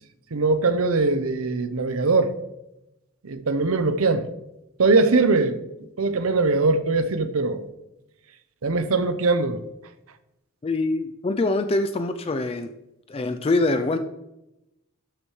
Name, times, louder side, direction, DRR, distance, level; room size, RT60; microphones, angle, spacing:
voice 1, 0.3-2.3 3.2-4.3 4.8-5.6 6.0-7.6 8.6-9.6, right 3 dB, 75° right, 0.7 m, -21 dB
voice 2, 10.6-12.7 13.1-14.0, left 2 dB, 25° left, 0.4 m, -24 dB
12.0 x 6.3 x 3.2 m
head